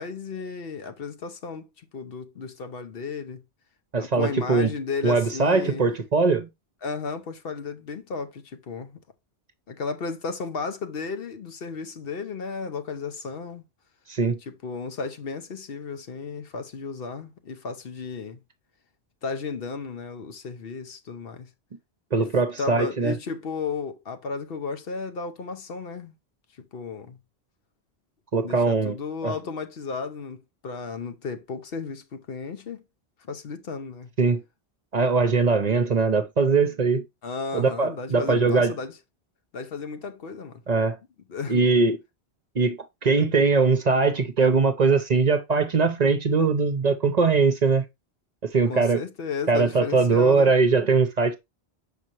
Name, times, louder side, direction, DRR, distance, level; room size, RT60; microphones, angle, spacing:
voice 1, 0.0-3.4 4.0-5.8 6.8-9.0 9.7-13.6 14.4-18.4 19.2-21.5 22.1-22.2 22.6-26.1 26.6-27.2 28.4-32.8 33.3-34.1 37.2-39.0 39.5-40.6 41.3-41.7 48.7-50.5, left 5 dB, 65° left, 1.0 m, -34 dB
voice 2, 3.9-4.7 5.0-6.5 14.1-14.4 22.1-23.1 28.3-29.0 29.2-29.3 34.2-34.4 34.9-37.0 37.5-38.7 40.7-41.0 41.5-42.0 42.5-47.8 48.5-49.0 49.5-51.4, right 4 dB, 45° right, 0.8 m, -21 dB
6.5 x 5.1 x 2.9 m
omnidirectional pair, 1.1 m